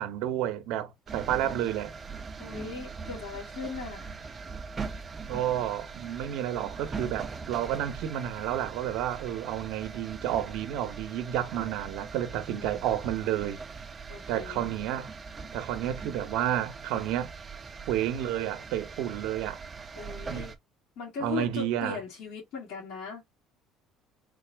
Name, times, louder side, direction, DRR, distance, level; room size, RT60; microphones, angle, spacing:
voice 1, 0.0-1.9 5.3-13.6 14.3-15.1 15.5-17.3 17.9-19.6 20.3-20.4 21.2-22.0, right 11 dB, 75° right, 0.7 m, -31 dB
sound 1, 1.1-20.6, right 5 dB, 25° right, 0.5 m, -41 dB
voice 2, 2.4-4.1 12.5-12.8 14.1-14.6 20.0-20.5 21.0-23.3, left 6 dB, 70° left, 2.1 m, -39 dB
3.7 x 2.4 x 3.2 m
cardioid pair, 115°, 0 cm